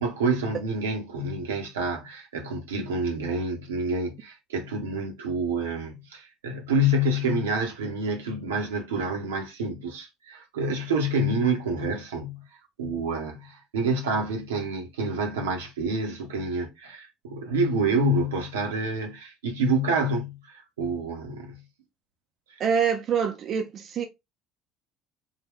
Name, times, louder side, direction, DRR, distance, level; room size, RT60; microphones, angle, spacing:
voice 1, 0.0-12.4 12.8-21.6, right 2 dB, 80° right, 0.8 m, -28 dB
voice 2, 22.6-24.1, right 7 dB, 45° right, 0.5 m, -25 dB
3.5 x 2.2 x 3.5 m
figure-of-eight pair, 60°, 0 cm